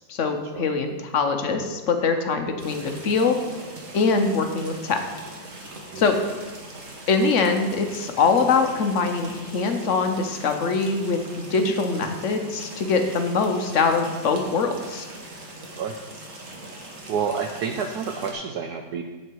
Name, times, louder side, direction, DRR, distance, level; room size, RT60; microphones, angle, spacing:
voice 1, 0.1-3.4 3.9-5.0 6.0-6.2 7.1-15.1, left 4 dB, 55° left, 6 dB, 0.9 m, -23 dB
sound 1, 2.6-18.3, right 2 dB, 45° right, 1.6 m, -41 dB
voice 2, 17.1-19.0, right 6 dB, 70° right, 4 dB, 1.0 m, -29 dB
9.7 x 7.5 x 4.6 m, 1.3 s
omnidirectional pair, 2.0 m